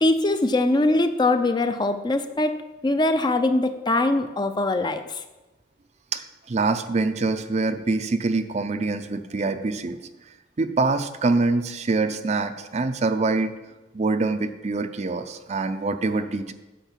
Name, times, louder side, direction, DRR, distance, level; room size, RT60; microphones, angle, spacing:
voice 1, 0.0-5.2, left 2 dB, 20° left, 9 dB, 0.4 m, -22 dB
voice 2, 6.1-10.0 10.6-13.5 13.9-16.5, right 3 dB, 35° right, 9 dB, 0.4 m, -25 dB
9.1 x 4.9 x 7.3 m, 1.1 s
head